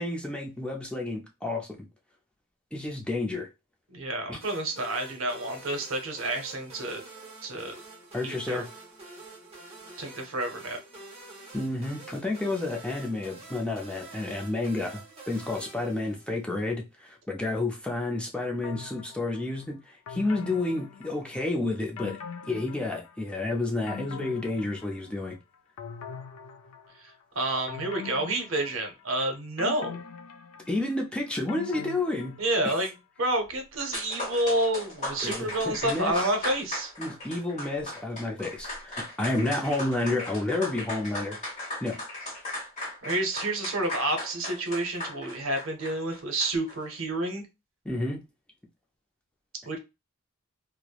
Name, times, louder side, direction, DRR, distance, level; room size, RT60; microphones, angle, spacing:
voice 1, 0.0-1.7 2.7-3.5 4.3-4.4 8.1-8.7 11.5-15.0 15.3-22.2 22.5-25.4 30.7-32.4 32.6-32.7 35.2-36.3 37.0-41.4 41.8-42.0 47.8-48.2, left 2 dB, 5° left, 0.4 m, -30 dB
voice 2, 3.9-7.0 7.4-7.8 8.2-8.6 10.0-10.8 27.0-29.9 32.4-32.9 33.2-36.9 43.0-47.5 49.6-49.8, right 1 dB, 65° right, 0.7 m, -29 dB
sound 1, 4.4-16.6, right 3 dB, 25° right, 0.8 m, -47 dB
sound 2, 18.6-19.4 20.1-21.5 22.0-23.3 23.6-25.3 25.8-27.1 27.7-29.1 29.6-32.8 33.2-33.3, left 6 dB, 80° left, 0.3 m, -42 dB
sound 3, 33.5-33.6 33.8-46.8, left 1 dB, 30° left, 1.0 m, -37 dB
3.0 x 2.0 x 2.3 m
head